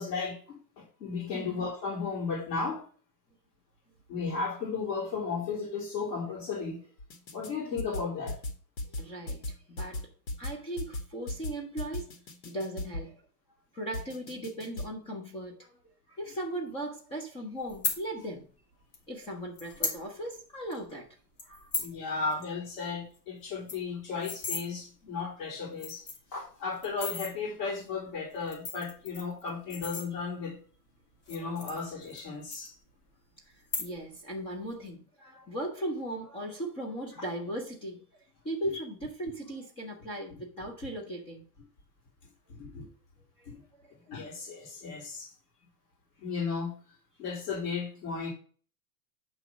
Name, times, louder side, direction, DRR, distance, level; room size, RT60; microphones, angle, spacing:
voice 1, 0.0-2.8 4.1-6.8 7.3-8.4 21.8-26.0 26.3-30.6 31.3-32.7 42.5-42.9 43.5-43.6 44.1-45.3 46.2-46.8 47.2-48.3, left 4 dB, 50° left, 3.4 m, -35 dB
voice 2, 1.3-1.6 8.8-10.1 10.4-12.1 12.4-13.1 13.7-15.8 16.1-18.5 19.1-21.1 21.4-21.7 31.4-31.5 33.5-38.0 38.4-41.4 43.4-43.5, right 1 dB, 10° left, 0.6 m, -38 dB
sound 1, 7.0-7.5 7.8-13.1 13.9-14.9, left 1 dB, 85° left, 2.0 m, -37 dB
sound 2, 17.7-18.0 18.9-19.0 19.6-20.0 20.4-20.5 20.7-20.9 21.4-21.9 22.3-22.4 22.7-22.8 23.1-23.2 23.5-24.6 25.3-25.4 25.7-26.3 26.8-27.3 28.3-30.5 31.2-32.2 32.5-33.1 33.6-34.2 34.5-34.9, left 4 dB, 30° left, 1.7 m, -36 dB
8.8 x 3.1 x 5.9 m
supercardioid pair, 160°, 48 cm